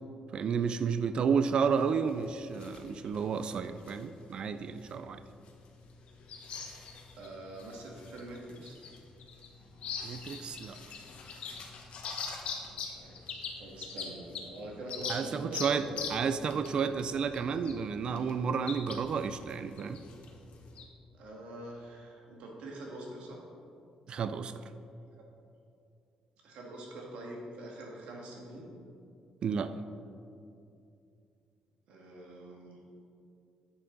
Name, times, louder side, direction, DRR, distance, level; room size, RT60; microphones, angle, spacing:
voice 1, 0.3-5.2 10.0-10.8 15.1-20.0 24.1-24.5 29.4-29.7, right 6 dB, 45° right, 11 dB, 0.3 m, -31 dB
sound 1, 1.6-20.8, left 5 dB, 65° left, 1.1 m, -44 dB
voice 2, 7.1-8.8 12.6-13.2 13.6-16.4 21.1-23.4 26.4-28.7 31.9-32.8, right 1 dB, 90° right, -1 dB, 1.8 m, -44 dB
9.8 x 6.9 x 4.0 m, 2.6 s
cardioid pair, 135°, 2 cm